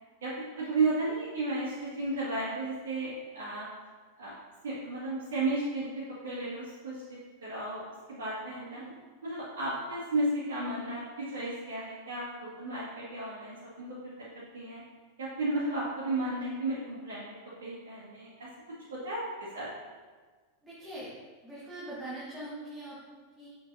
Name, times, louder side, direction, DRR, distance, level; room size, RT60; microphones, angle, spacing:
voice 1, 0.2-3.7 4.2-4.3 4.6-7.8 8.1-8.8 9.2-14.8 15.2-18.5 18.9-19.3 19.5-19.7, right 2 dB, 60° right, -11 dB, 2.0 m, -34 dB
voice 2, 20.6-21.1 21.4-23.5, right 1 dB, 10° right, -9 dB, 1.7 m, -43 dB
6.7 x 6.7 x 2.8 m, 1.4 s
figure-of-eight pair, 90°, 0 cm